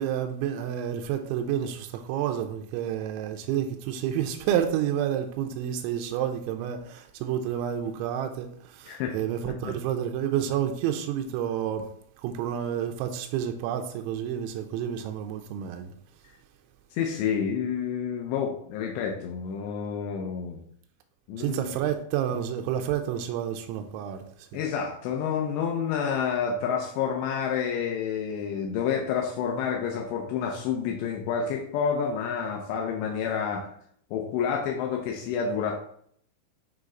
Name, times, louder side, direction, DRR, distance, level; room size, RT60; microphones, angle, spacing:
voice 1, 0.0-11.9 12.2-15.9 21.4-24.2 24.5-24.6, right 10 dB, 90° right, 2.6 m, -29 dB
voice 2, 16.9-20.6 21.3-21.7 24.5-33.7 34.1-35.8, left 7 dB, 85° left, 2.5 m, -29 dB
9.0 x 3.2 x 3.8 m
omnidirectional pair, 6.0 m